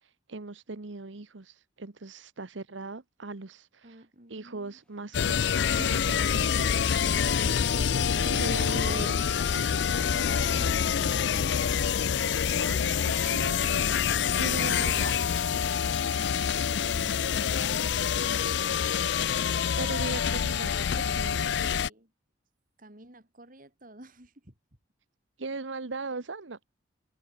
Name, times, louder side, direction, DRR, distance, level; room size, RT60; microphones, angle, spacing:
voice 1, 0.0-4.0 4.3-6.2 8.3-9.8 10.2-10.6 12.6-14.1 14.4-15.1 19.8-21.6 25.4-26.6, right 3 dB, 85° right, 1.2 m, -39 dB
voice 2, 3.8-4.8 6.3-6.8 7.5-9.3 9.7-11.5 16.3-18.1 21.5-22.1 22.8-24.5, right 1 dB, 45° right, 4.2 m, -50 dB
sound 1, 5.1-21.9, left 7 dB, 65° left, 0.4 m, -26 dB
sound 2, 5.5-13.3 15.4-15.5 15.9-16.5 17.1-17.2 17.7-18.1, equal, 5° left, 0.6 m, -45 dB
head